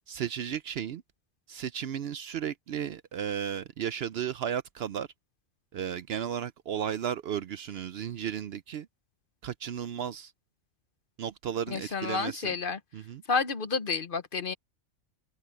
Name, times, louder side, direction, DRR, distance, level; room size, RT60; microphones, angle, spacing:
voice 1, 0.1-1.0 1.5-5.1 5.7-8.9 9.4-10.3 11.2-12.5 12.9-13.2, right 9 dB, 65° right, 0.7 m, -34 dB
voice 2, 11.7-12.8 13.3-14.5, left 5 dB, 50° left, 1.0 m, -30 dB
omnidirectional pair, 1.3 m